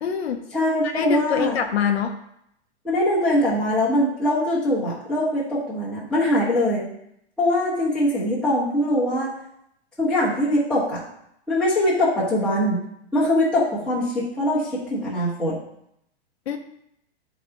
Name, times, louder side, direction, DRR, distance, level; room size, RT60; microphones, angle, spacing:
voice 1, 0.0-0.4 0.9-2.2 16.5-16.6, left 8 dB, 70° left, 4 dB, 0.9 m, -24 dB
voice 2, 0.5-1.6 2.8-6.8 7.4-9.3 10.0-11.0 11.5-12.8 13.1-15.6, left 1 dB, 5° left, -10 dB, 1.7 m, -22 dB
10.5 x 4.1 x 3.0 m, 0.76 s
supercardioid pair, 180°, 33 cm